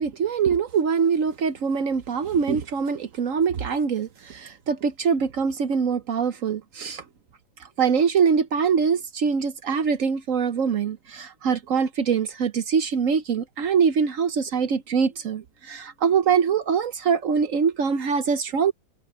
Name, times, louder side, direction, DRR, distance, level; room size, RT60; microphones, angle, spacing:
voice 1, 0.0-7.0 7.8-18.7, right 6 dB, 55° right, 1.0 m, -23 dB
open air
omnidirectional pair, 2.0 m